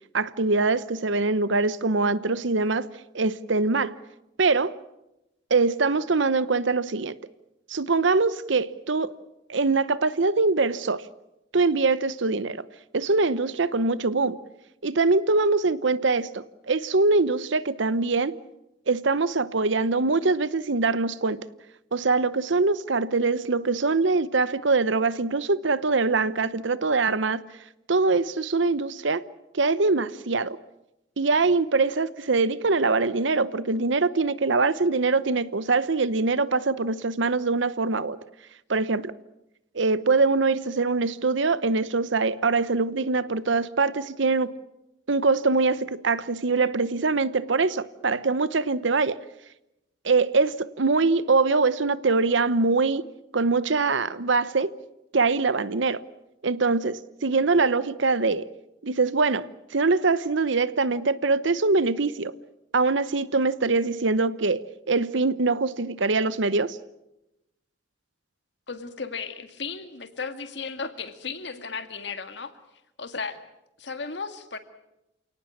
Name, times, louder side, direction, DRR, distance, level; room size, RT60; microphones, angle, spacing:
voice 1, 0.1-2.9 3.1-3.9 4.4-4.8 5.5-7.2 7.7-9.1 9.5-11.0 11.5-12.6 12.9-14.4 14.8-18.3 18.9-21.4 21.9-27.4 27.9-29.2 29.5-30.6 31.2-38.2 38.7-39.1 39.7-44.5 45.1-49.2 50.0-53.1 53.3-54.7 55.1-56.0 56.4-58.5 58.8-62.3 62.7-66.8, right 3 dB, 70° right, 0.9 m, -23 dB
voice 2, 68.7-72.5 73.0-73.4 73.8-74.6, left 5 dB, 60° left, 2.0 m, -35 dB
28.5 x 18.0 x 8.5 m
head